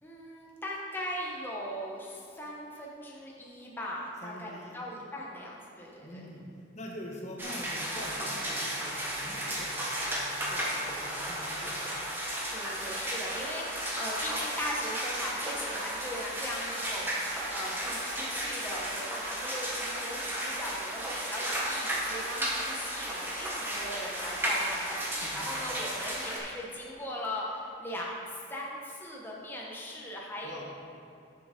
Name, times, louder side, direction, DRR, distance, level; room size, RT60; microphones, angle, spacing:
voice 1, 0.0-6.2 12.5-30.6, left 1 dB, 10° left, -3 dB, 0.9 m, -39 dB
voice 2, 4.2-4.7 6.0-6.4 6.7-9.7 10.1-11.8 25.2-25.4 30.4-30.6, left 1 dB, 35° left, 0 dB, 1.1 m, -44 dB
sound 1, 7.4-26.4, right 1 dB, 10° right, 1.2 m, -34 dB
7.7 x 7.1 x 5.0 m, 2.7 s
head